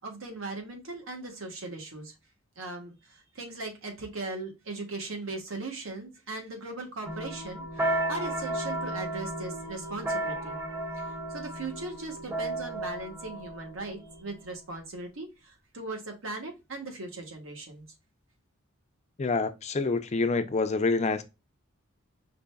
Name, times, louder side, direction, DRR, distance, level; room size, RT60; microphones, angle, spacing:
voice 1, 0.0-2.1 2.6-10.7 11.0-17.8, right 2 dB, 85° right, 1.3 m, -39 dB
sound 1, 7.1-14.5, right 1 dB, 15° right, 0.7 m, -34 dB
voice 2, 19.2-21.2, left 3 dB, 35° left, 0.5 m, -27 dB
5.0 x 3.2 x 2.3 m
head